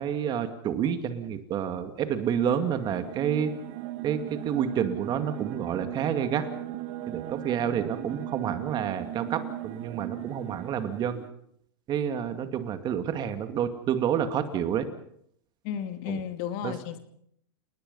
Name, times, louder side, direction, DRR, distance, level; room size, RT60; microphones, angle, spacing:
voice 1, 0.0-3.5 4.0-6.4 7.1-11.2 11.9-14.9 16.1-16.2 16.6-16.7, right 8 dB, 30° right, 8 dB, 2.3 m, -29 dB
sound 1, 2.1-11.3, right 14 dB, 50° right, 1.8 m, -38 dB
voice 2, 15.6-17.0, left 9 dB, 50° left, 8 dB, 2.8 m, -33 dB
29.5 x 19.5 x 5.6 m, 0.69 s
hypercardioid pair, 130°, 14 cm